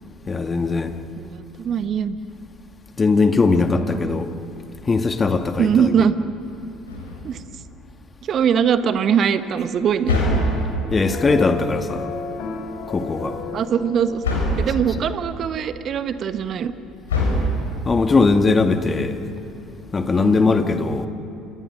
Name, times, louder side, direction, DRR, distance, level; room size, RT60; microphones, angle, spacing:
voice 1, 0.3-0.9 3.0-4.3 4.8-5.9 10.9-12.1 12.9-13.4 17.8-19.2 19.9-21.1, left 3 dB, 25° left, 6 dB, 2.0 m, -19 dB
voice 2, 1.2-2.2 4.0-4.1 5.6-6.2 7.2-7.4 8.2-10.2 13.5-14.2 14.6-16.7 20.1-20.5, right 7 dB, 40° right, 11 dB, 1.4 m, -21 dB
sound 1, 6.9-7.5 10.1-11.0 14.2-14.9 17.1-17.9, left 1 dB, 75° left, 7.1 m, -22 dB
sound 2, 10.3-14.7, left 4 dB, 55° left, 3.8 m, -33 dB
28.5 x 28.0 x 6.6 m, 2.6 s
figure-of-eight pair, 60°, 0 cm